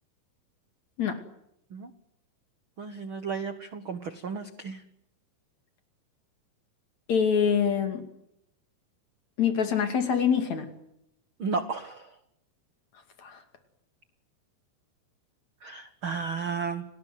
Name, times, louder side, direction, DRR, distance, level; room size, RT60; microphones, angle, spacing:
voice 1, 2.8-4.8 11.4-12.2 15.6-16.8, right 5 dB, 70° right, 9 dB, 1.2 m, -33 dB
voice 2, 7.1-8.1 9.4-10.7 13.2-13.4, left 7 dB, 45° left, 7 dB, 3.5 m, -25 dB
30.0 x 19.5 x 9.3 m, 0.81 s
omnidirectional pair, 4.7 m